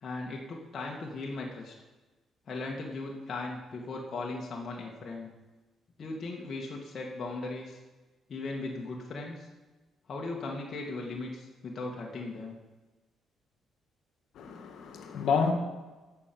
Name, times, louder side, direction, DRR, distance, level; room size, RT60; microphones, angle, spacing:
voice 1, 0.0-1.7 2.5-5.3 6.0-7.8 8.3-9.5 10.1-12.6, left 3 dB, 50° left, -1 dB, 1.9 m, -38 dB
voice 2, 14.4-15.5, left 5 dB, 75° left, 5 dB, 1.9 m, -29 dB
15.5 x 6.1 x 7.0 m, 1.2 s
cardioid pair, 90°, 0 cm